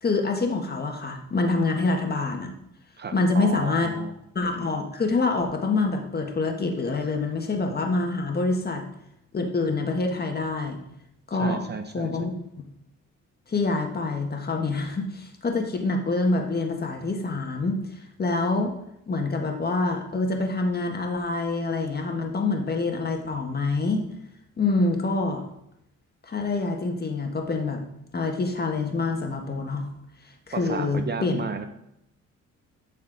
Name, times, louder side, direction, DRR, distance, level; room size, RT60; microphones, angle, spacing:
voice 1, 0.0-2.5 3.1-3.9 4.3-8.8 9.3-10.8 11.3-11.6 11.9-12.4 13.5-18.7 19.1-24.0 24.6-25.4 26.3-27.8 28.1-29.9 30.5-31.4, left 3 dB, 30° left, 3 dB, 1.4 m, -26 dB
voice 2, 3.0-4.1 11.3-12.2 30.5-31.7, right 5 dB, 35° right, 8 dB, 0.6 m, -33 dB
11.5 x 4.3 x 4.0 m, 0.80 s
cardioid pair, 90°, 30 cm